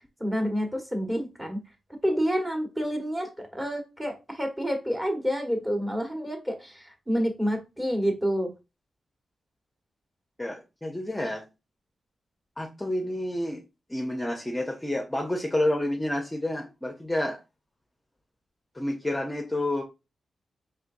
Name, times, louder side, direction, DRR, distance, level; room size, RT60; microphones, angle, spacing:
voice 1, 0.2-1.6 2.0-8.5, equal, 10° right, 1.3 m, -28 dB
voice 2, 10.4-11.4 12.6-13.6 13.9-17.4 18.7-19.8, left 1 dB, 15° left, 0.7 m, -29 dB
4.4 x 3.4 x 2.5 m
cardioid pair, 90°, 0 cm